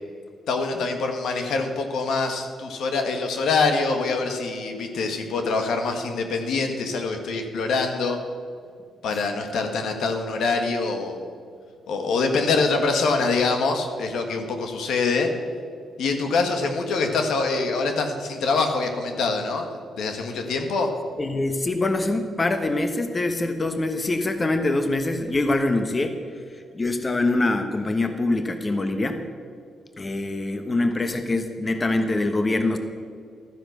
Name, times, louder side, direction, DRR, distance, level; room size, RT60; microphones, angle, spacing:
voice 1, 0.5-8.2 9.0-11.3 11.9-15.3 16.0-20.9, left 4 dB, 80° left, 5 dB, 1.7 m, -24 dB
voice 2, 21.2-26.2 26.7-29.2 30.0-32.8, left 2 dB, 25° left, 7 dB, 1.1 m, -24 dB
13.0 x 9.6 x 6.7 m, 2.2 s
cardioid pair, 85°, 0 cm